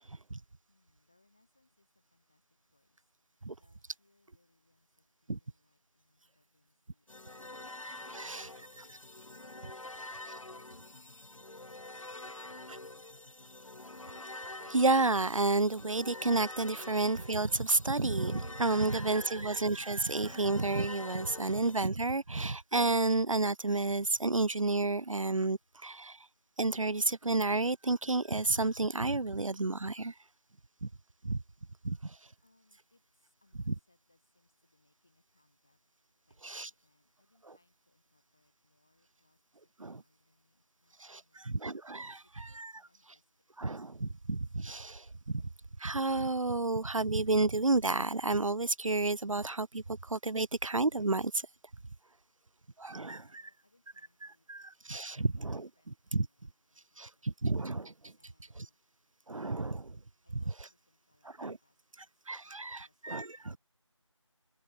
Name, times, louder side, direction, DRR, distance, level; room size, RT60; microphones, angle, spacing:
voice 1, 0.7-7.8 25.5-25.8 32.4-41.6 42.2-43.7 52.3-57.3 58.1-58.8 60.2-63.6, left 2 dB, 5° left, 5.4 m, -74 dB
sound 1, 7.1-21.9, left 2 dB, 80° left, 0.9 m, -47 dB
voice 2, 7.8-8.5 14.7-26.2 26.6-30.1 30.8-30.9 31.2-31.4 31.8-32.2 33.7-33.8 36.4-36.7 39.8-40.0 41.1-42.2 43.6-45.4 45.8-51.4 52.8-53.2 54.5-55.7 56.1-56.3 57.0-58.1 59.3-60.0 61.4-61.6 62.3-62.4 63.0-63.6, right 3 dB, 85° right, 0.6 m, -31 dB
figure-of-eight pair, 180°, 17 cm